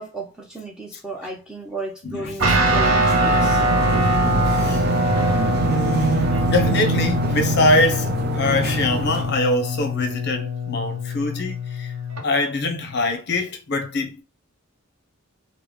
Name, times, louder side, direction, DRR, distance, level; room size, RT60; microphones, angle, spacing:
voice 1, 0.0-3.7, right 2 dB, 5° right, 0.6 m, -34 dB
voice 2, 2.0-2.6 3.7-4.1 4.4-4.8 5.6-11.9 12.2-14.2, left 2 dB, 50° left, 0.6 m, -24 dB
sound 1, 2.4-9.4, right 3 dB, 45° right, 0.4 m, -24 dB
Guitar, 2.4-12.2, left 1 dB, 75° right, 0.7 m, -24 dB
3.3 x 2.0 x 3.4 m
head